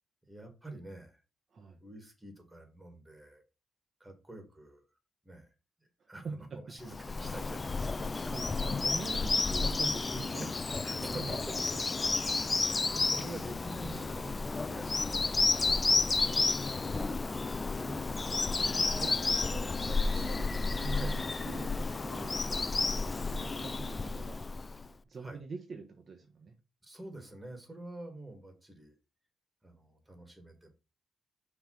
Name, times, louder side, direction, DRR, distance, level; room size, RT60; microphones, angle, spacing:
voice 1, 0.3-1.2 1.8-3.4 4.0-4.9 5.2-5.5 6.1-8.4 9.4-9.5 10.1-10.5 10.8-11.5 12.3-15.2 16.9-18.1 20.9-21.2 25.2-25.4 26.8-29.0 29.6-30.7, right 1 dB, 10° right, 5 dB, 2.3 m, -47 dB
voice 2, 6.0-6.7 8.2-10.4 10.9-11.7 18.3-22.4 23.3-24.4 25.0-26.5, right 4 dB, 50° right, 4 dB, 1.1 m, -44 dB
Bird vocalization bird call bird song, 6.9-24.9, left 3 dB, 30° left, 0.4 m, -31 dB
5.9 x 3.4 x 5.9 m, 0.29 s
cardioid pair, 100°, 0 cm